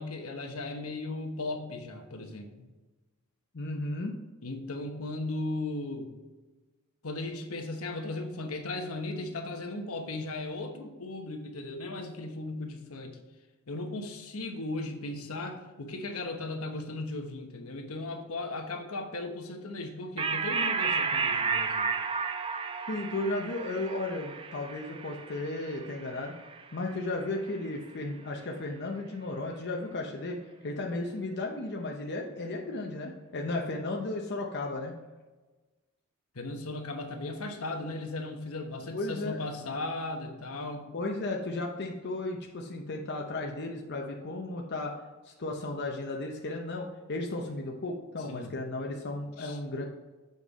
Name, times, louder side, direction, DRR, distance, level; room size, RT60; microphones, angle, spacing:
voice 1, 0.0-2.5 4.4-6.1 7.0-13.1 13.7-21.9 36.3-40.9 48.3-48.6 49.4-49.6, left 2 dB, 80° left, 4 dB, 1.1 m, -37 dB
voice 2, 3.5-4.1 22.9-26.3 26.7-30.4 30.6-34.9 38.9-39.5 40.9-44.9 45.3-49.8, left 2 dB, 50° left, 0 dB, 0.7 m, -34 dB
sound 1, 20.2-27.1, right 5 dB, 25° right, 0.4 m, -32 dB
7.4 x 5.3 x 4.0 m, 1.2 s
head